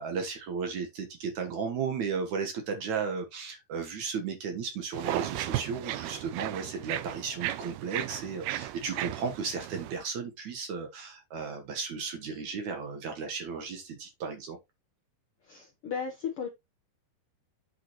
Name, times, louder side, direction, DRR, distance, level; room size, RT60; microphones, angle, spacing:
voice 1, 0.0-14.6, right 5 dB, 60° right, 2.4 m, -35 dB
sound 1, 4.9-10.0, right 15 dB, 90° right, 2.6 m, -35 dB
voice 2, 15.5-16.5, left 6 dB, 75° left, 1.3 m, -35 dB
8.3 x 6.5 x 3.1 m
omnidirectional pair, 4.4 m